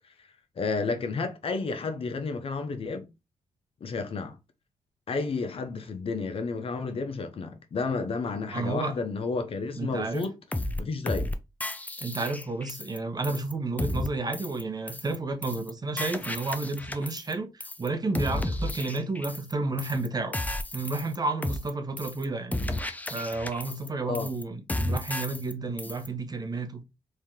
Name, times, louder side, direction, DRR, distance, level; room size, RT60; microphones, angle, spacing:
voice 1, 0.6-3.1 3.8-4.4 5.1-10.3 10.8-11.3 24.1-24.3, left 4 dB, 55° left, 0.7 m, -31 dB
voice 2, 8.5-9.0 9.8-10.2 12.0-20.3 20.7-22.6 23.1-26.8, right 3 dB, 35° right, 0.9 m, -31 dB
sound 1, 10.2-10.3 10.5-10.8 11.1-11.3 11.6-13.0 13.2-13.5 13.8-14.1 14.3-14.6 14.9-15.2 15.4-15.7 16.0-17.3 17.6-17.9 18.1-19.5 19.8-20.1 20.3-21.2 21.4-21.7 22.0-22.2 22.5-23.9 24.1-24.4 24.7-25.5 25.8-26.1, left 1 dB, 15° left, 0.5 m, -33 dB
3.2 x 2.7 x 3.6 m
cardioid pair, 60°, 11 cm